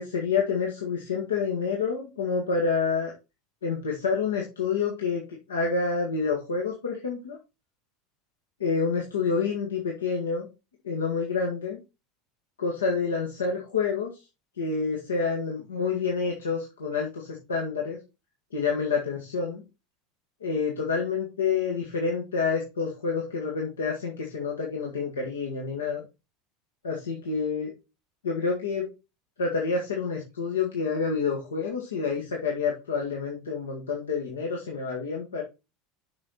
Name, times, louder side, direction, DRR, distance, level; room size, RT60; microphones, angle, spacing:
voice 1, 0.0-3.1 3.6-5.2 5.5-7.4 8.6-10.4 10.8-11.8 12.6-14.1 14.6-18.0 18.5-19.6 20.4-26.0 26.8-27.7 28.2-28.9 29.4-35.4, left 5 dB, 75° left, -1 dB, 1.5 m, -28 dB
6.6 x 5.7 x 4.2 m, 0.28 s
figure-of-eight pair, 75°, 0 cm